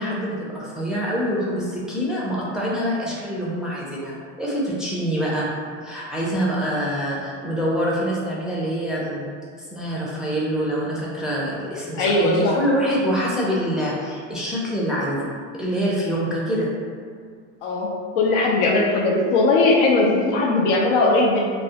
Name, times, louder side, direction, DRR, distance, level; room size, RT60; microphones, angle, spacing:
voice 1, 0.0-5.5 5.8-9.3 9.7-15.3 15.6-16.7, equal, ahead, -7 dB, 0.4 m, -25 dB
voice 2, 12.0-12.6 17.6-21.5, left 2 dB, 85° left, -1 dB, 0.6 m, -19 dB
2.3 x 2.0 x 2.8 m, 2.1 s
supercardioid pair, 105°, 35 cm